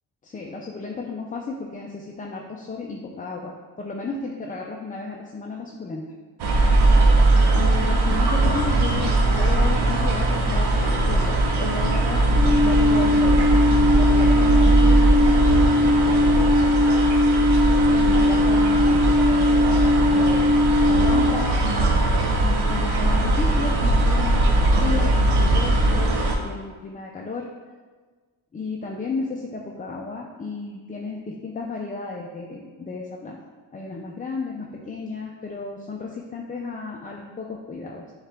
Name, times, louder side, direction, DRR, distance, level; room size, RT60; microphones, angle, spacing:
voice 1, 0.2-6.0 6.7-6.8 7.5-16.8 17.9-20.5 20.8-22.0 22.4-27.5 28.5-33.4 33.7-38.1, left 3 dB, 20° left, -1 dB, 0.4 m, -33 dB
sound 1, 6.4-26.4, right 2 dB, 70° right, 0.8 m, -20 dB
Alarm, 12.3-21.2, left 1 dB, 5° right, 1.5 m, -19 dB
6.4 x 2.4 x 3.3 m, 1.4 s
cardioid pair, 90°, 41 cm